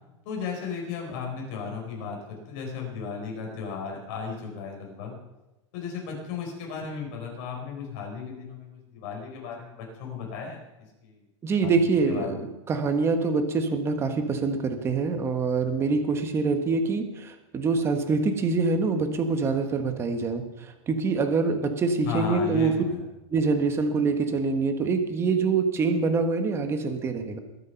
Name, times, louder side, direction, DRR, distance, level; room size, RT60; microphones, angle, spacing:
voice 1, 0.2-5.2 5.7-10.6 11.0-11.2 11.6-12.5 22.0-23.0, left 5 dB, 45° left, 0 dB, 4.7 m, -35 dB
voice 2, 11.4-22.7 23.3-27.4, right 4 dB, 15° right, 7 dB, 1.2 m, -25 dB
22.0 x 8.2 x 5.8 m, 1.0 s
supercardioid pair, 165°, 15 cm